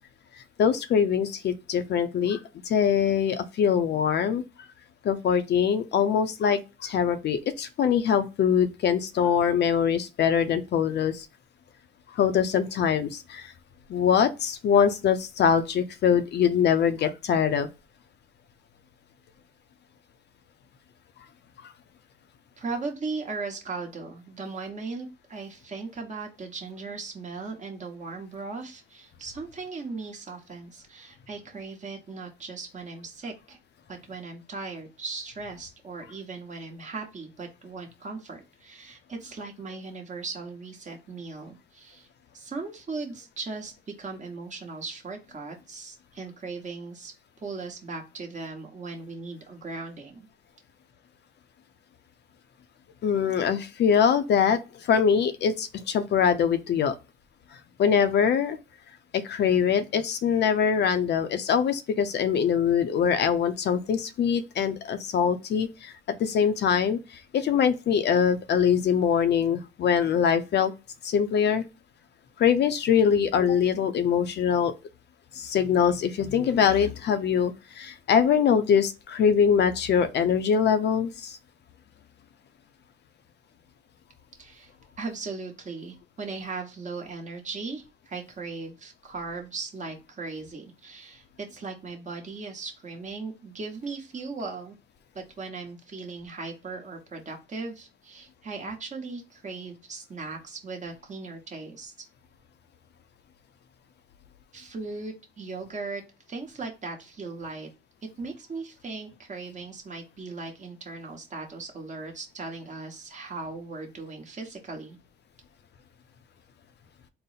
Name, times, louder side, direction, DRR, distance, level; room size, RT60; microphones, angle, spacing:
voice 1, 0.6-2.4 2.6-4.4 5.0-11.3 12.1-13.5 13.9-17.7 53.0-57.0 57.8-58.6 59.1-65.9 66.2-70.7 71.0-71.6 72.4-74.7 75.3-81.4, left 7 dB, 60° left, 0.5 m, -23 dB
voice 2, 22.6-33.6 33.9-42.1 42.3-43.7 44.0-47.1 47.4-50.3 84.4-84.7 85.0-94.8 95.1-101.9 104.5-106.0 106.3-107.7 108.2-115.0, right 4 dB, 40° right, 1.0 m, -38 dB
3.9 x 2.0 x 3.9 m
cardioid pair, 90°, 20 cm